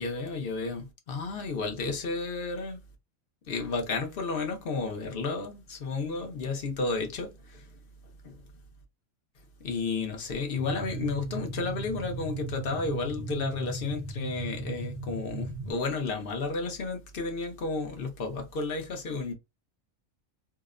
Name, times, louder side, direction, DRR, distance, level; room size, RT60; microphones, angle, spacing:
voice 1, 0.0-2.8 3.5-7.8 8.2-8.3 9.6-19.3, left 3 dB, 55° left, 0.7 m, -32 dB
sound 1, 10.6-15.7, right 4 dB, 85° right, 1.1 m, -37 dB
2.8 x 2.0 x 2.3 m
omnidirectional pair, 1.4 m